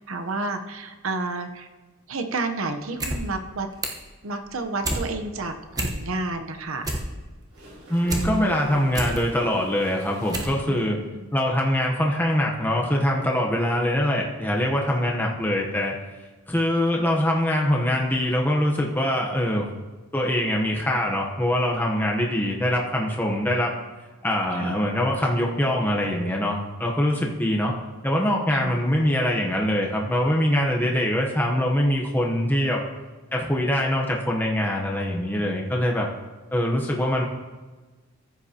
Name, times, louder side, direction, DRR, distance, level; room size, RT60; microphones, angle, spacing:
voice 1, 0.1-1.7 2.1-3.7 4.2-6.9 10.7-11.3 24.6-24.8 28.5-28.8, right 3 dB, 70° right, 6 dB, 0.8 m, -30 dB
sound 1, 2.8-3.2 3.5-4.1 4.5-5.0 5.4-5.5 5.7-6.3 6.6-8.3 8.7-9.2 9.7-9.8 10.3-10.6 10.9-11.0, right 1 dB, 15° right, 1.0 m, -29 dB
sound 2, 7.3-10.9 14.7-14.9, equal, 85° right, 3.5 m, -42 dB
voice 2, 7.9-11.0 11.3-15.9 16.5-19.7 20.1-23.7 24.2-27.8 28.0-32.8 33.3-36.1 36.5-37.2, left 1 dB, 10° left, -1 dB, 0.8 m, -23 dB
14.5 x 7.7 x 2.8 m, 1.3 s
head